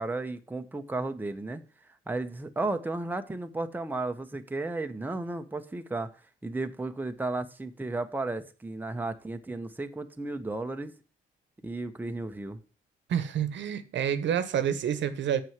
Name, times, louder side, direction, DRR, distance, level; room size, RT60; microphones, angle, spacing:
voice 1, 0.0-1.6 2.1-6.1 6.4-10.9 11.6-12.6, right 2 dB, 10° right, 1.0 m, -34 dB
voice 2, 13.1-15.4, right 9 dB, 65° right, 1.1 m, -28 dB
7.0 x 6.2 x 7.4 m
cardioid pair, 90°, 20 cm